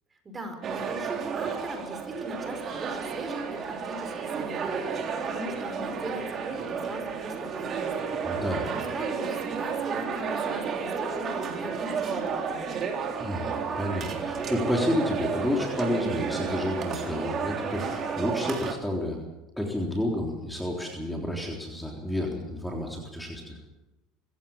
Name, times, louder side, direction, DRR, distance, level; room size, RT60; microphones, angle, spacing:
voice 1, 0.1-4.7 5.0-8.4 8.7-12.8, right 1 dB, 20° right, 7 dB, 5.1 m, -40 dB
sound 1, 0.6-18.7, right 6 dB, 35° right, 3.6 m, -32 dB
voice 2, 8.2-8.7 13.2-19.2 19.6-23.7, left 1 dB, 5° left, 0 dB, 3.7 m, -30 dB
24.5 x 16.0 x 7.3 m, 1.0 s
supercardioid pair, 120°, 0 cm